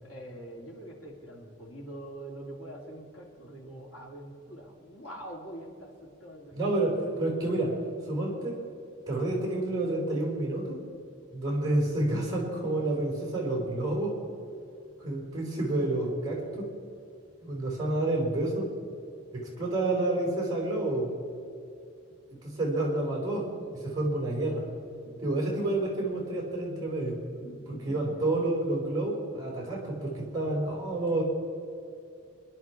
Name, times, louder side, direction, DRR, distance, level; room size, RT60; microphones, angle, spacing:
voice 1, 0.0-6.7 7.0-7.2 25.0-25.2 27.4-28.2, right 1 dB, 80° left, -2 dB, 3.6 m, -44 dB
voice 2, 6.5-7.7 8.1-8.6 9.1-10.8 11.3-14.1 15.0-16.7 17.4-18.7 19.3-21.1 22.4-23.5 23.8-24.6 25.2-27.2 27.8-31.2, right 2 dB, 20° right, -2 dB, 4.7 m, -29 dB
26.5 x 11.0 x 4.8 m, 2.6 s
head